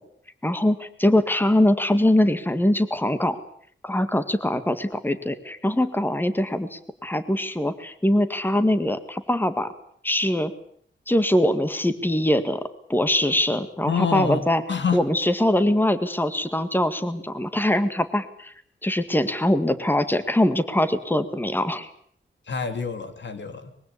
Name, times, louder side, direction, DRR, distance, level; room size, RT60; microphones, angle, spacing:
voice 1, 0.4-3.4 3.8-9.7 10.0-10.5 11.1-12.6 12.9-14.6 14.9-18.5 18.8-21.9, left 1 dB, 10° left, 11 dB, 1.9 m, -22 dB
voice 2, 13.9-15.0 22.5-23.7, left 6 dB, 70° left, 8 dB, 2.8 m, -27 dB
24.0 x 22.5 x 8.5 m, 0.63 s
wide cardioid pair, 110°, 20 cm